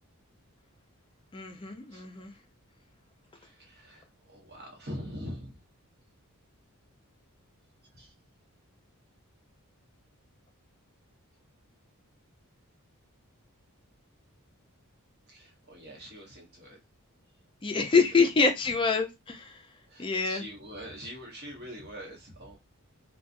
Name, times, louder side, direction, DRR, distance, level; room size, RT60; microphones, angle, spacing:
voice 1, 1.3-2.3 17.6-19.6 20.0-20.5, left 4 dB, 25° left, 0.4 m, -26 dB
voice 2, 3.3-5.5 7.9-8.1 15.3-16.8 18.0-18.2 19.9-22.6, equal, 45° right, 1.0 m, -43 dB
2.5 x 2.3 x 2.5 m
head